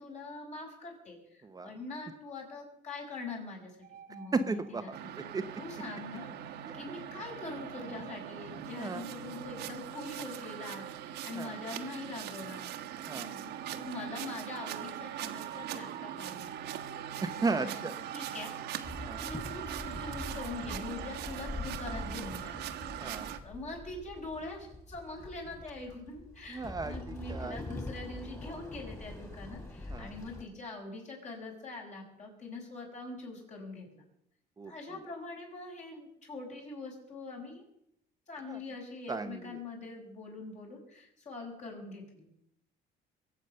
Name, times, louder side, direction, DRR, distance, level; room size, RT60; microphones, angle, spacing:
voice 1, 0.0-3.8 4.1-5.1 5.6-12.7 13.1-16.8 17.3-18.5 19.2-22.7 23.4-34.0 34.6-37.6 38.3-42.3, left 3 dB, 45° left, -1 dB, 6.4 m, -43 dB
sound 1, 3.8-5.2 6.2-12.1 12.6-19.7 20.3-21.7, right 9 dB, 60° right, 0.8 m, -51 dB
voice 2, 4.3-5.4 6.9-7.0 8.6-9.0 11.4-11.6 13.1-13.3 17.2-17.9 19.0-19.2 23.0-23.3 26.5-27.6 29.9-30.1 34.6-34.7 38.5-38.6 39.1-39.6, right 3 dB, 20° right, 8 dB, 0.8 m, -35 dB
sound 2, 4.9-23.4, right 11 dB, 85° right, 1.3 m, -41 dB
Walk footsteps / Chatter / Hiss, 18.8-30.4, left 2 dB, 15° left, 3.6 m, -44 dB
22.5 x 8.2 x 6.7 m, 0.76 s
cardioid pair, 110°, 17 cm